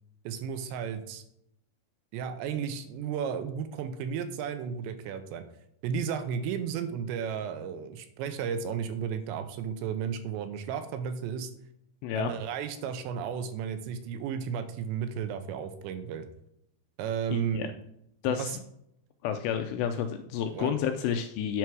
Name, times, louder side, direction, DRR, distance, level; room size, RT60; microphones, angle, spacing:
voice 1, 0.3-1.2 2.1-5.5 5.8-11.5 12.1-16.3 17.0-17.7 18.3-18.5 20.5-20.7, right 7 dB, 80° right, 9 dB, 2.9 m, -33 dB
voice 2, 17.3-17.7 18.2-18.6 19.2-21.6, left 8 dB, 85° left, 6 dB, 2.5 m, -30 dB
9.2 x 6.0 x 4.7 m, 0.77 s
omnidirectional pair, 5.3 m